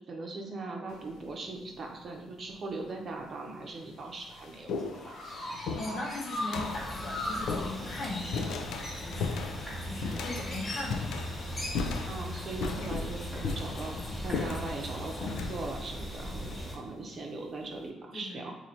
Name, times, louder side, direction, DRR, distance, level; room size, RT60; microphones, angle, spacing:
voice 1, 0.1-5.3 12.1-13.9 14.2-18.5, right 3 dB, 50° right, 2 dB, 0.6 m, -40 dB
sound 1, 0.9-1.3 2.3-2.4 3.2-3.3 3.7-17.2, left 4 dB, 85° left, 0.3 m, -38 dB
Chirp tweet, 4.7-15.3, left 1 dB, 35° left, 0.9 m, -41 dB
voice 2, 5.7-9.5 9.8-11.3 18.1-18.5, left 2 dB, 65° left, -3 dB, 1.0 m, -39 dB
sound 2, 6.6-16.8, equal, 10° left, 1.3 m, -40 dB
2.7 x 2.7 x 4.3 m, 1.0 s
cardioid pair, 90°, 0 cm